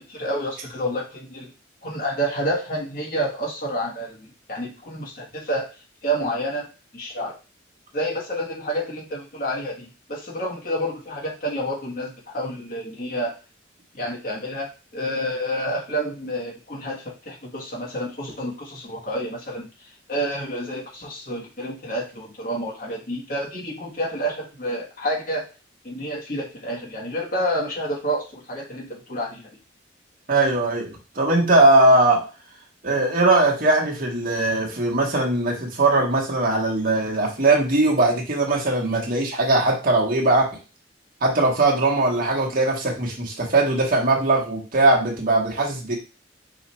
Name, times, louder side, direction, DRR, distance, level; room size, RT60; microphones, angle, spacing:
voice 1, 0.0-1.5 1.8-5.7 6.0-6.7 6.9-7.4 7.9-13.3 13.9-25.5 25.8-29.5, equal, 45° left, -2 dB, 1.3 m, -29 dB
voice 2, 30.3-32.2 32.8-40.5 41.2-46.0, right 2 dB, 45° right, -1 dB, 1.1 m, -20 dB
4.9 x 2.4 x 4.2 m, 0.32 s
head